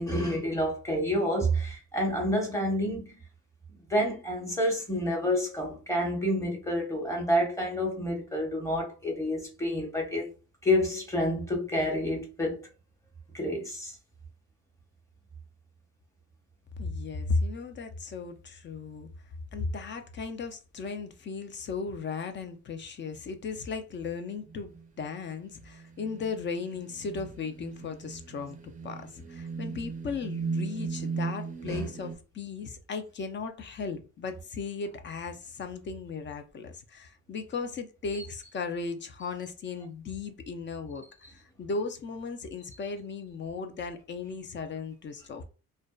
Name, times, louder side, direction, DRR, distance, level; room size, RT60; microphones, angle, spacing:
voice 1, 0.0-3.2 3.9-10.3 10.6-12.6 13.3-14.0 29.7-29.8 31.7-31.9, equal, 10° left, 1.0 m, -29 dB
voice 2, 16.8-19.1 19.5-41.0 41.3-45.4, left 4 dB, 40° left, 0.4 m, -36 dB
sound 1, 24.5-25.0 25.7-32.1, right 5 dB, 25° right, 0.4 m, -37 dB
2.5 x 2.1 x 2.3 m
cardioid pair, 90°, 30 cm